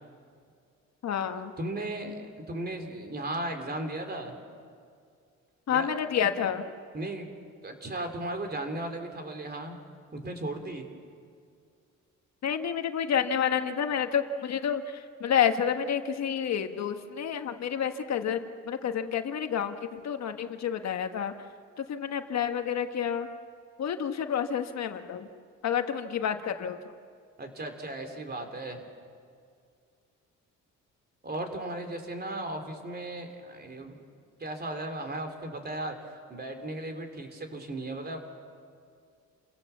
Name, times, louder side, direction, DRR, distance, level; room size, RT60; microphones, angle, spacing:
voice 1, 1.0-1.5 5.7-6.6 12.4-14.8 15.2-21.3 21.9-23.3 23.8-25.3 25.6-26.8, left 8 dB, 60° left, 7 dB, 1.4 m, -29 dB
voice 2, 1.6-2.2 2.5-4.4 5.7-6.0 6.9-7.3 7.6-9.8 10.1-10.9 27.4-28.8 31.2-34.0 34.4-36.0 36.3-38.2, right 1 dB, 30° right, 5 dB, 3.7 m, -36 dB
29.5 x 17.0 x 7.3 m, 2.2 s
cardioid pair, 90°, 30 cm